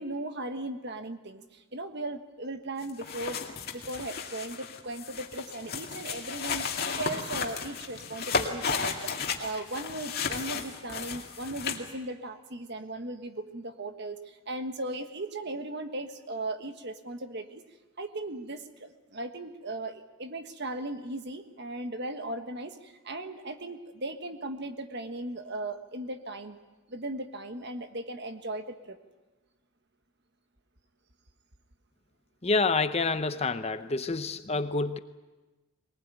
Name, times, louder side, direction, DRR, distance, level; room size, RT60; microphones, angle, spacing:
voice 1, 0.0-3.4 3.7-17.6 18.0-26.6 26.9-29.0, right 2 dB, 50° right, 8 dB, 1.4 m, -37 dB
sound 1, 2.8-11.9, left 5 dB, 45° left, 2.1 m, -34 dB
voice 2, 32.4-35.0, left 3 dB, 30° left, 11 dB, 0.7 m, -28 dB
22.0 x 19.5 x 9.1 m, 1.2 s
head